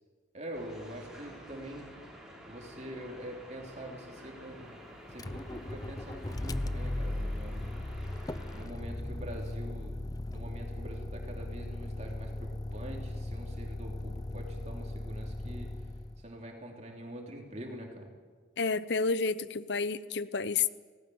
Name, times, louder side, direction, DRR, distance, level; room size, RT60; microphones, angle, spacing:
voice 1, 0.3-1.9 2.5-4.8 5.1-7.7 8.1-8.2 8.5-9.9 10.3-15.7 16.2-18.1, equal, 35° right, 1 dB, 3.4 m, -45 dB
sound 1, 0.5-8.7, equal, 5° right, 5.3 m, -50 dB
Motor vehicle (road), 5.1-16.3, left 1 dB, 20° left, 0.5 m, -37 dB
voice 2, 18.6-20.7, left 4 dB, 70° left, 16 dB, 0.8 m, -30 dB
18.5 x 18.0 x 9.5 m, 1.6 s
head